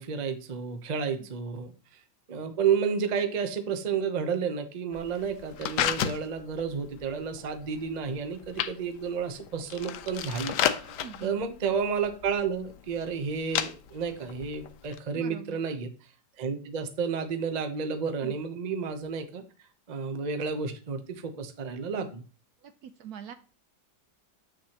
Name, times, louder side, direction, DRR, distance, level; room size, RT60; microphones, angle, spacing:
voice 1, 0.0-1.7 2.3-10.8 11.2-15.9 16.4-19.4 19.9-22.2, right 6 dB, 40° right, 6 dB, 0.6 m, -31 dB
sound 1, 4.9-15.0, left 10 dB, 75° left, 1.2 m, -34 dB
voice 2, 10.9-11.5 15.1-15.6 18.2-18.4 22.6-23.3, right 8 dB, 70° right, 10 dB, 1.0 m, -44 dB
8.0 x 6.4 x 2.9 m, 0.36 s
omnidirectional pair, 1.9 m